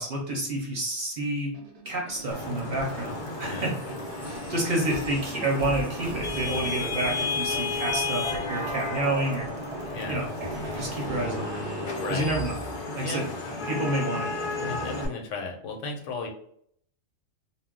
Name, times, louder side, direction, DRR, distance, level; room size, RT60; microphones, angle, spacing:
voice 1, 0.0-1.5 1.9-4.0 4.2-9.5 10.1-10.3 10.8-11.7 12.1-12.5 13.0-13.2 13.7-14.3 14.6-14.8, right 1 dB, 50° right, -1 dB, 0.7 m, -29 dB
sound 1, 1.5-12.8, right 3 dB, 70° right, 0.3 m, -39 dB
Vehicle horn car horn honking / Traffic noise roadway noise, 2.3-15.1, left 3 dB, 50° left, 0.6 m, -33 dB
voice 2, 12.0-12.3 13.0-13.2 14.7-16.3, left 3 dB, 75° left, 2 dB, 1.0 m, -35 dB
2.2 x 2.1 x 3.7 m, 0.66 s
omnidirectional pair, 1.3 m